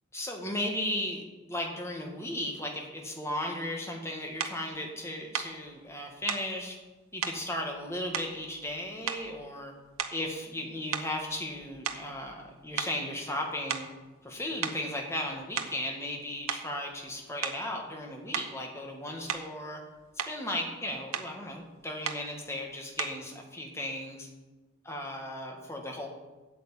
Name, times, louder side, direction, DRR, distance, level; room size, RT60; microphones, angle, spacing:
voice 1, 0.1-6.8 7.1-9.7 10.1-13.9 14.2-19.8 20.3-24.3 24.9-26.1, left 1 dB, 15° left, 1 dB, 1.7 m, -36 dB
sound 1, 4.4-4.6 5.3-5.6 6.3-6.5 7.2-7.4 8.1-8.7 9.1-9.4 9.9-10.3 10.9-12.5 12.8-13.0 13.7-14.0 14.6-14.8 15.4-15.8 16.5-16.7 17.4-17.7 18.3-18.6 19.3-19.6 20.0-20.4 21.1-21.3 22.0-22.3 23.0-23.3, right 7 dB, 90° right, 1.0 m, -35 dB
8.7 x 8.3 x 8.4 m, 1.2 s
head